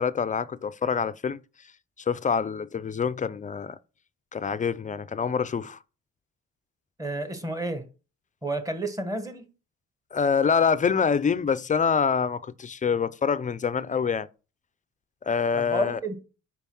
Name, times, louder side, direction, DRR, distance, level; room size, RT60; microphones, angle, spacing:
voice 1, 0.0-1.4 2.1-3.8 4.3-5.8 10.1-14.3 15.3-16.0, left 6 dB, 25° left, 0.4 m, -25 dB
voice 2, 7.0-7.9 8.4-9.5 15.5-16.2, right 2 dB, 10° right, 1.3 m, -31 dB
5.5 x 4.6 x 6.0 m
cardioid pair, 90°, 30 cm